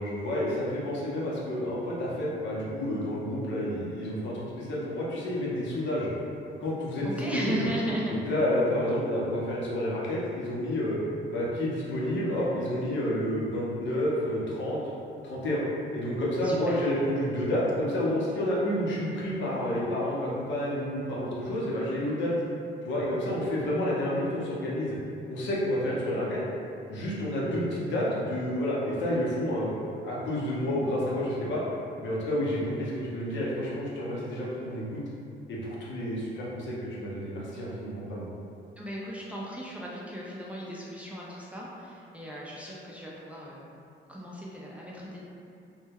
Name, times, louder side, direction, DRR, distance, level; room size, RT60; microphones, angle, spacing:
voice 1, 0.0-6.1 6.6-7.7 8.3-11.0 11.3-14.8 15.2-15.6 15.9-22.3 22.8-25.0 25.3-26.4 26.9-29.7 30.0-31.6 32.0-35.0 35.5-38.3, left 1 dB, 65° left, -6 dB, 0.7 m, -29 dB
voice 2, 7.0-8.1 16.4-16.8 38.8-43.7 44.1-45.2, equal, 5° right, -6 dB, 0.4 m, -36 dB
2.2 x 2.1 x 3.3 m, 2.5 s
cardioid pair, 90°, 20 cm